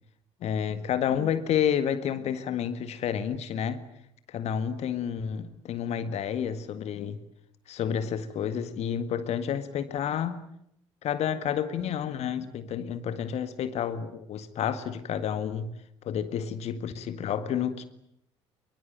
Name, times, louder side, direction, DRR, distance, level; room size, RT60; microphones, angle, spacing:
voice 1, 0.4-3.8 4.3-7.2 7.7-10.4 11.0-15.8 16.0-17.8, left 8 dB, 45° left, 1.8 m, -30 dB
23.5 x 23.5 x 9.2 m
figure-of-eight pair, 55°, 15 cm